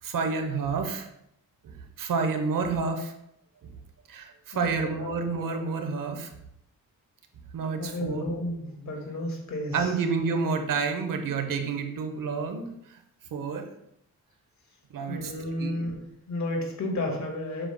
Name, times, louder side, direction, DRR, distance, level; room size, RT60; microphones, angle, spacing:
voice 1, 0.0-1.1 1.6-3.1 3.6-3.7 4.1-6.3 7.5-8.3 9.7-13.0 13.3-13.7 14.9-15.3 15.6-15.9, right 5 dB, 70° right, 6 dB, 1.0 m, -29 dB
voice 2, 4.5-5.6 7.8-9.9 15.1-16.0 16.3-17.7, left 1 dB, 55° left, 0 dB, 2.0 m, -32 dB
7.7 x 6.2 x 2.2 m, 0.77 s
cardioid pair, 100°, 35 cm